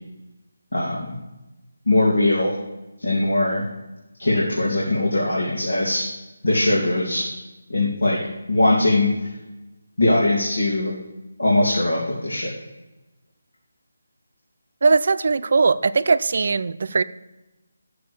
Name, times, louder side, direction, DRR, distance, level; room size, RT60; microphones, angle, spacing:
voice 1, 1.9-2.5 3.0-3.6 4.2-6.0 6.4-7.3 7.7-8.2 8.5-9.1 10.0-10.9 11.4-12.5, left 2 dB, 85° left, -4 dB, 2.8 m, -20 dB
voice 2, 14.8-17.0, right 4 dB, 55° right, 13 dB, 0.5 m, -19 dB
11.0 x 6.9 x 6.9 m, 1.0 s
figure-of-eight pair, 160°, 0 cm